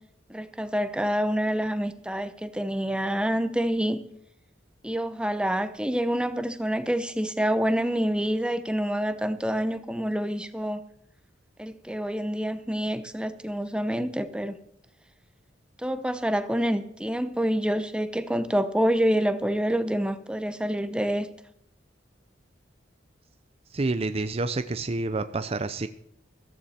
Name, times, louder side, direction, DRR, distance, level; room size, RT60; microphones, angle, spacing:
voice 1, 0.3-4.0 4.8-10.8 11.6-14.6 15.8-21.3, equal, 5° right, 11 dB, 0.8 m, -27 dB
voice 2, 23.7-25.9, right 3 dB, 30° right, 11 dB, 0.5 m, -28 dB
14.5 x 14.5 x 4.3 m, 0.71 s
head